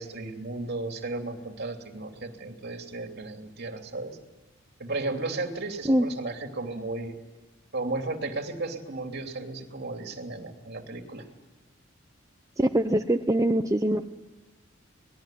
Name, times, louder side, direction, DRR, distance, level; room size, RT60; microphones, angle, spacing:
voice 1, 0.0-4.2 4.8-7.2 7.7-11.2, right 2 dB, 55° right, 4 dB, 2.9 m, -34 dB
voice 2, 12.6-14.0, right 1 dB, 15° right, 5 dB, 0.7 m, -23 dB
26.5 x 20.0 x 9.2 m, 1.3 s
head